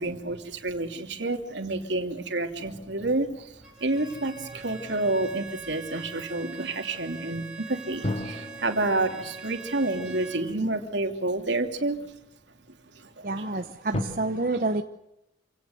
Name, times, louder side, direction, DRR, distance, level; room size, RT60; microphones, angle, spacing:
voice 1, 0.0-12.0 12.9-13.5, right 2 dB, 75° right, 2.9 m, -29 dB
sound 1, 2.6-5.2 8.0-11.4 12.1-12.2 13.9-14.0, left 1 dB, 35° left, 2.8 m, -38 dB
Bowed string instrument, 3.6-10.5, right 5 dB, 5° right, 4.1 m, -42 dB
voice 2, 13.2-14.8, right 2 dB, 50° right, 1.0 m, -28 dB
27.0 x 18.0 x 7.9 m
head